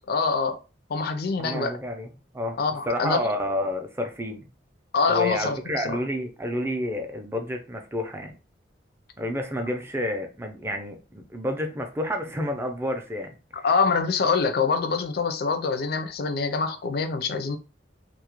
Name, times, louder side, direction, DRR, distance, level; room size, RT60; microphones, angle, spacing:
voice 1, 0.1-0.6 0.9-1.8 2.6-3.3 4.9-6.0 13.6-17.6, left 4 dB, 55° left, 0.4 m, -25 dB
voice 2, 1.4-2.6 2.9-4.5 5.1-8.3 9.2-13.4, left 1 dB, 15° right, 0.4 m, -30 dB
2.3 x 2.0 x 2.9 m
head